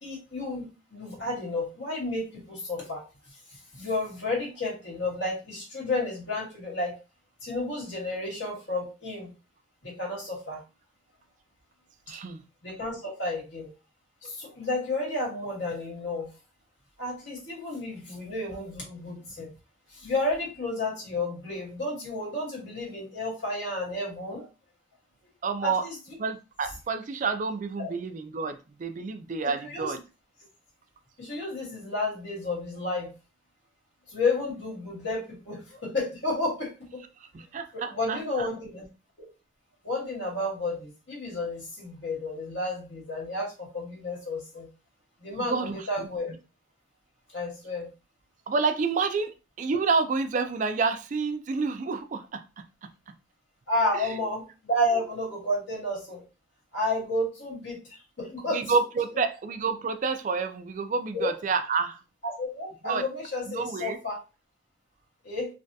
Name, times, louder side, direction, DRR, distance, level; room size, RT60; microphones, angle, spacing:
voice 1, 0.0-3.0 3.7-7.0 7.4-9.3 9.8-10.6 12.6-13.7 14.2-16.3 17.0-19.5 19.9-24.5 25.6-25.9 27.8-27.9 29.6-29.9 31.2-33.1 34.1-37.0 37.7-38.8 39.8-44.7 45.2-46.3 47.3-47.9 53.7-56.2 56.7-58.6 61.1-61.3 62.2-64.2 65.2-65.5, left 2 dB, 85° left, -3 dB, 1.9 m, -31 dB
voice 2, 12.1-12.4 25.4-25.9 26.2-30.0 37.3-38.5 45.5-46.1 48.5-52.4 52.8-52.9 54.0-54.1 58.5-62.0 62.8-63.0 63.5-64.0, right 4 dB, 45° right, 8 dB, 0.3 m, -29 dB
3.3 x 2.3 x 2.6 m, 0.30 s
head